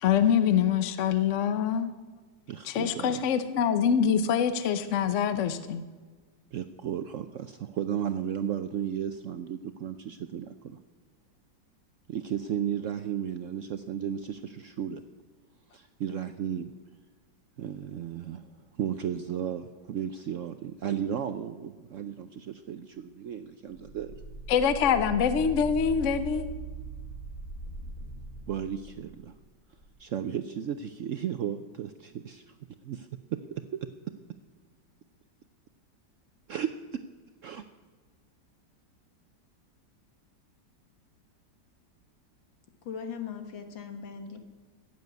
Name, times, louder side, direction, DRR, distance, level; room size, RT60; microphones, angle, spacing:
voice 1, 0.0-1.9 2.6-5.8 24.5-26.5, left 7 dB, 55° left, 11 dB, 0.9 m, -25 dB
voice 2, 2.5-3.2 6.5-10.8 12.1-15.0 15.7-16.7 17.6-18.4 18.7-24.1 28.5-29.3 30.0-32.4 32.8-33.9 36.5-37.0 37.4-37.7, right 9 dB, 85° right, 10 dB, 0.6 m, -34 dB
sound 1, 23.8-29.3 29.8-29.9, right 2 dB, 30° left, 3.1 m, -40 dB
voice 3, 42.9-44.4, left 6 dB, 85° left, 7 dB, 2.2 m, -39 dB
14.5 x 7.7 x 9.4 m, 1.4 s
omnidirectional pair, 2.0 m